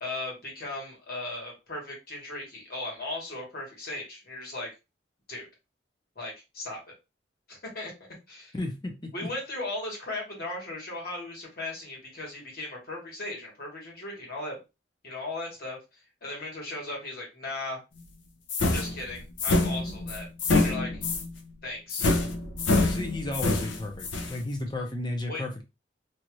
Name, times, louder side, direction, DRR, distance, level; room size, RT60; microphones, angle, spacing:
voice 1, 0.0-4.7 5.3-5.5 6.1-6.8 7.5-7.9 8.3-8.5 9.1-14.6 15.0-15.8 16.2-17.8 18.7-21.1 21.6-22.1 25.3-25.4, left 2 dB, 55° left, -2 dB, 1.5 m, -37 dB
voice 2, 8.5-9.3 22.7-25.6, left 2 dB, 25° left, 3 dB, 0.7 m, -33 dB
sound 1, 18.5-21.3 21.9-24.4, left 2 dB, 85° left, 0.6 m, -26 dB
2.8 x 2.4 x 3.0 m, 0.26 s
head